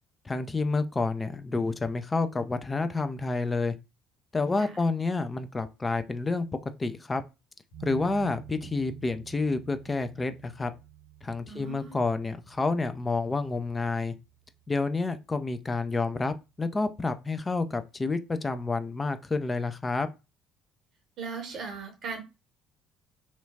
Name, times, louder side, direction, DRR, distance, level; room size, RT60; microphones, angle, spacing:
voice 1, 0.3-3.7 4.3-6.5 6.8-7.2 7.8-10.7 11.2-14.1 14.7-20.1, left 3 dB, 25° left, 0.4 m, -29 dB
sound 1, 7.7-14.8, right 13 dB, 70° left, 1.0 m, -48 dB
voice 2, 11.5-12.0 21.2-22.2, right 5 dB, 50° right, 0.7 m, -38 dB
2.8 x 2.3 x 2.7 m
figure-of-eight pair, 50°, 0 cm